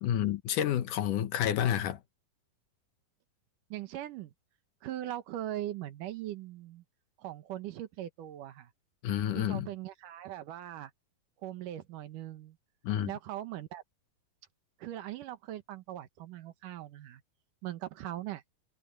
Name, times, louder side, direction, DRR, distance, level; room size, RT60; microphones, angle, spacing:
voice 1, 0.0-2.0 9.0-9.7 12.8-13.1, left 10 dB, 75° left, 2.6 m, -29 dB
voice 2, 3.7-4.3 4.8-6.8 7.2-8.7 9.3-10.9 11.4-12.6 13.1-13.8 14.8-17.2 17.6-18.4, right 13 dB, 75° right, 2.6 m, -40 dB
omnidirectional pair, 3.9 m